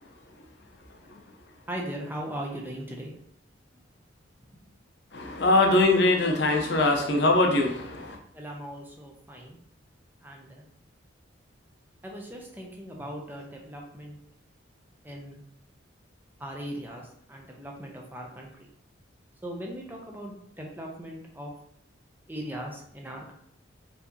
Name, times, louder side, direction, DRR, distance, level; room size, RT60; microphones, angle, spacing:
voice 1, 1.7-3.1 8.3-9.6 10.2-10.7 12.0-14.2 15.0-15.4 16.4-18.7 19.4-21.5 22.3-23.3, right 1 dB, 10° right, -1 dB, 0.5 m, -39 dB
voice 2, 5.1-8.2, left 2 dB, 60° left, 2 dB, 0.6 m, -22 dB
4.5 x 2.8 x 2.7 m, 0.68 s
head